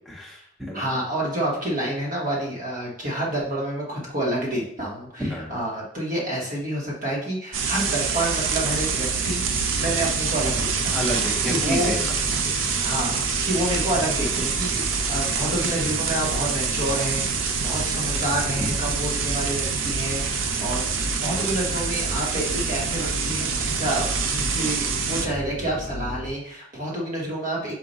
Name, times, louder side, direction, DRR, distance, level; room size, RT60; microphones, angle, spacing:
voice 1, 0.1-0.9 5.2-5.5 10.9-12.2 18.6-18.7 20.6-20.8, left 1 dB, ahead, -5 dB, 0.9 m, -30 dB
voice 2, 0.7-9.4 9.8-11.0 11.5-12.0 12.4-27.8, right 1 dB, 40° right, -3 dB, 1.3 m, -29 dB
sound 1, 7.5-25.3, right 6 dB, 70° right, 0.5 m, -26 dB
sound 2, 8.3-26.3, left 1 dB, 75° left, 0.5 m, -35 dB
4.7 x 2.5 x 4.0 m, 0.67 s
head